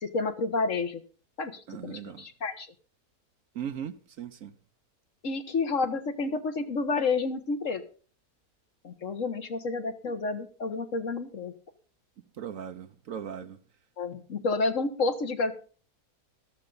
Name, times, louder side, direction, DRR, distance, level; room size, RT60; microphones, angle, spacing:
voice 1, 0.0-1.0 1.4-2.7 5.2-7.8 8.8-11.5 14.0-15.5, left 3 dB, 55° left, 1.6 m, -30 dB
voice 2, 1.7-2.2 3.5-4.5 12.4-13.6, right 8 dB, 60° right, 1.1 m, -38 dB
13.5 x 13.5 x 3.9 m
omnidirectional pair, 1.7 m